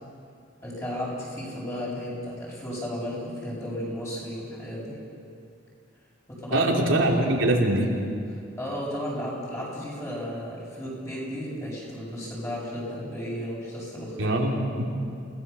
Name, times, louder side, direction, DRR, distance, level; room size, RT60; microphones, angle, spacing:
voice 1, 0.6-5.0 6.3-6.7 8.3-14.4, equal, 15° left, -4 dB, 7.6 m, -34 dB
voice 2, 6.5-7.9 14.2-14.9, right 1 dB, 80° right, -1 dB, 3.3 m, -23 dB
29.0 x 19.0 x 7.1 m, 2.4 s
head